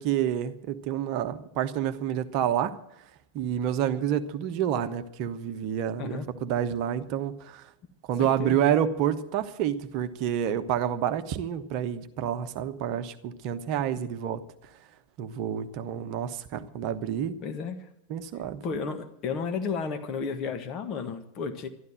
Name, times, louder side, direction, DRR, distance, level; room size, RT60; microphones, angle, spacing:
voice 1, 0.0-2.7 3.3-7.7 8.1-14.4 15.2-17.4 18.1-18.6, right 9 dB, 45° right, 10 dB, 1.1 m, -28 dB
voice 2, 8.2-8.7 17.4-17.8 18.6-21.7, left 5 dB, 35° left, 7 dB, 1.5 m, -32 dB
12.5 x 12.0 x 7.6 m, 0.78 s
figure-of-eight pair, 90°, 0 cm